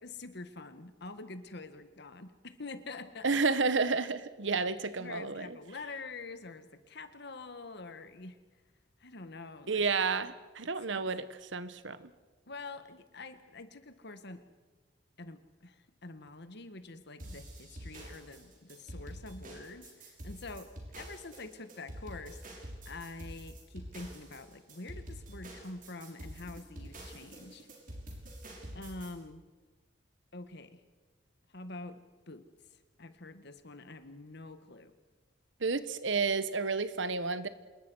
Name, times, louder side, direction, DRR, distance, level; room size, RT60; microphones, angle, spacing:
voice 1, 0.0-3.5 5.0-8.4 9.0-9.8 10.9-11.1 12.5-14.5 15.2-20.7 21.0-22.4 22.8-27.7 28.7-29.4 30.3-30.8 31.5-32.5 33.0-34.9, left 3 dB, 65° left, 10 dB, 1.7 m, -46 dB
voice 2, 3.2-5.6 9.7-12.0 35.6-37.5, right 4 dB, 75° right, 13 dB, 1.2 m, -31 dB
sound 1, 17.2-29.1, right 1 dB, 45° right, 6.2 m, -46 dB
27.0 x 20.5 x 6.4 m, 1.3 s
head